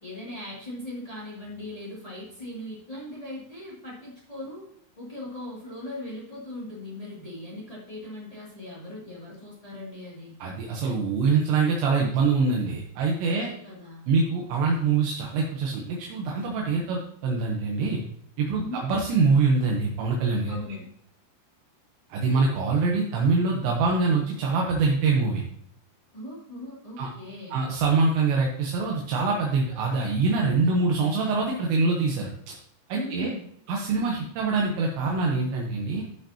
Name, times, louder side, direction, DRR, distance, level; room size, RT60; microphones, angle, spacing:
voice 1, 0.0-4.7 5.0-10.4 13.2-14.1 18.5-18.8 20.5-20.9 26.1-27.6 32.9-33.4, left 1 dB, 25° left, -7 dB, 0.7 m, -39 dB
voice 2, 10.4-13.5 14.1-18.0 18.4-20.6 22.1-25.4 27.0-27.1 27.5-32.6 32.9-33.3 33.7-36.0, right 4 dB, 75° right, -1 dB, 3.1 m, -24 dB
14.0 x 5.8 x 2.9 m, 0.68 s
omnidirectional pair, 5.4 m